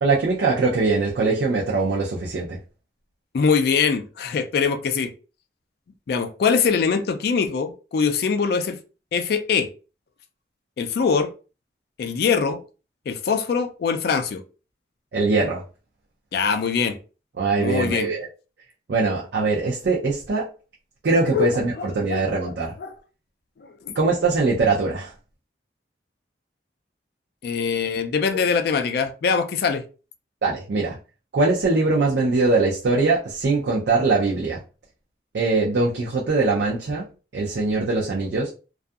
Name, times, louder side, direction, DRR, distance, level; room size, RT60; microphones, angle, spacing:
voice 1, 0.0-2.6 15.1-15.6 17.4-18.3 18.9-20.5 21.0-22.7 24.0-25.1 30.4-31.0 31.3-34.6 35.3-37.1 37.3-38.5, right 3 dB, 70° right, 0.5 m, -22 dB
voice 2, 3.3-5.1 6.1-8.8 9.1-9.7 10.8-11.3 12.0-12.6 13.1-14.4 16.3-17.0 17.6-18.1 21.3-21.5 21.8-22.5 22.8-22.9 23.6-23.8 27.4-29.8, left 5 dB, 55° left, 0.3 m, -23 dB
2.6 x 2.3 x 2.3 m
head